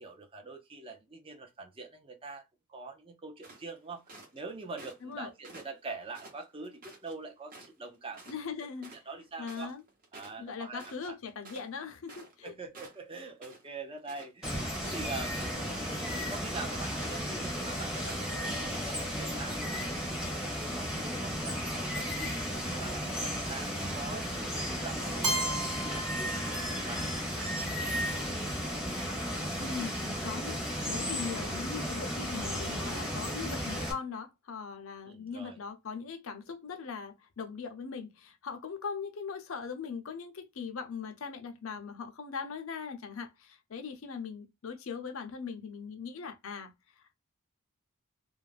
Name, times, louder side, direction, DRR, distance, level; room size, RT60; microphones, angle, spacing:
voice 1, 0.0-2.4 2.7-4.0 4.3-8.3 8.9-9.7 10.1-10.8 11.1-11.2 12.4-15.5 16.3-22.4 22.8-28.1 35.1-35.6, right 3 dB, 25° right, 0.5 m, -44 dB
sound 1, 3.4-4.4 4.8-5.1 5.4-7.1 7.5-7.9 8.1-8.4 8.6-12.5 12.7-13.7 14.0-15.0 15.4-16.4 16.7-17.1 17.4-17.7 18.1-18.3, right 2 dB, 40° right, 0.8 m, -51 dB
voice 2, 8.3-8.9 9.4-9.8 10.4-12.5 29.6-46.7, left 5 dB, 60° left, 0.5 m, -40 dB
Water, 14.4-33.9, equal, 5° right, 0.8 m, -34 dB
Keyboard (musical), 25.2-27.2, right 1 dB, 80° right, 1.0 m, -35 dB
2.4 x 2.1 x 3.1 m
head